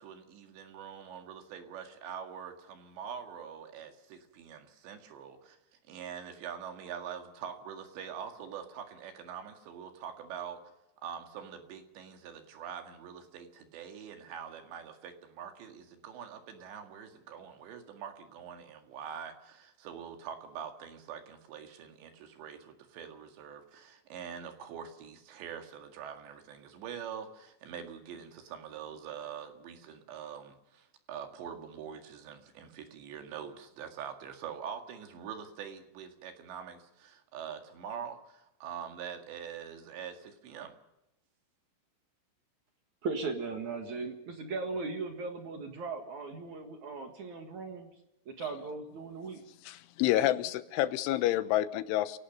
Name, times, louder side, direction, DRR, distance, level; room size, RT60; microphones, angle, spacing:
voice 1, 0.0-5.6 5.9-10.6 11.0-40.7, right 8 dB, 70° right, 5 dB, 4.1 m, -44 dB
voice 2, 43.0-47.9 48.3-49.4, right 4 dB, 55° right, 4 dB, 2.5 m, -38 dB
voice 3, 49.6-52.2, left 13 dB, 85° left, 13 dB, 3.4 m, -28 dB
28.0 x 18.0 x 5.4 m, 0.89 s
omnidirectional pair, 5.4 m